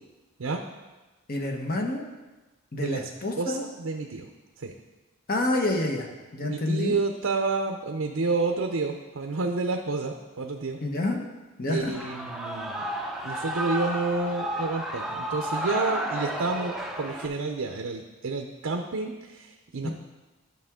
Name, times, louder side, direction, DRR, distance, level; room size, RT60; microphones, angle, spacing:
voice 1, 1.3-2.0 2.7-3.6 5.3-7.0 10.8-11.2 11.6-11.9 19.8-19.9, left 2 dB, 45° left, 2 dB, 1.0 m, -28 dB
voice 2, 2.7-3.1 3.4-4.3 4.6-4.7 6.4-10.8 11.7-12.8 13.2-19.9, right 3 dB, 75° right, 4 dB, 0.6 m, -29 dB
Shout / Cheering, 11.9-17.3, equal, ahead, 0.6 m, -32 dB
11.5 x 5.9 x 3.6 m, 1.2 s
head